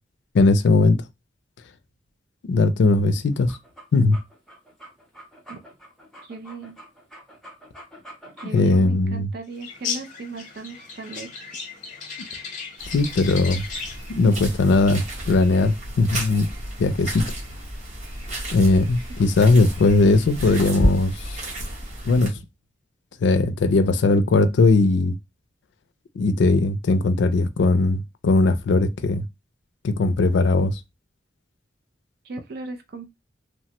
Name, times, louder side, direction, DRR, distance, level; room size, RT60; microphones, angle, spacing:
voice 1, 0.3-1.0 2.4-3.6 3.9-4.2 8.5-9.3 12.9-13.6 14.1-16.5 16.8-17.3 18.5-21.4 22.0-22.3 23.2-25.2 26.2-29.2 29.8-30.8, left 3 dB, 75° left, 0.4 m, -19 dB
sound 1, 3.3-8.8, right 1 dB, ahead, 0.7 m, -46 dB
voice 2, 6.2-6.7 8.4-11.6 32.2-33.1, right 3 dB, 55° right, 0.4 m, -37 dB
sound 2, 9.6-14.1, left 5 dB, 45° left, 0.8 m, -35 dB
Stomping Mud - Gross, 12.8-22.3, equal, 40° right, 1.0 m, -31 dB
3.2 x 2.1 x 2.8 m
head